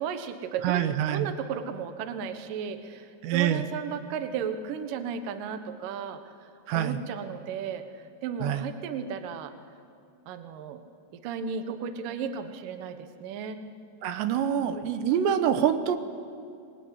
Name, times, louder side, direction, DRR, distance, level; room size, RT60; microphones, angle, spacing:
voice 1, 0.0-9.5 10.3-10.8 11.2-13.6, right 7 dB, 65° right, 9 dB, 2.5 m, -35 dB
voice 2, 0.6-1.3 3.2-3.7 6.7-7.0 8.4-8.7 14.0-16.0, right 9 dB, 85° right, 10 dB, 3.2 m, -25 dB
25.0 x 20.5 x 9.8 m, 2.5 s
omnidirectional pair, 5.0 m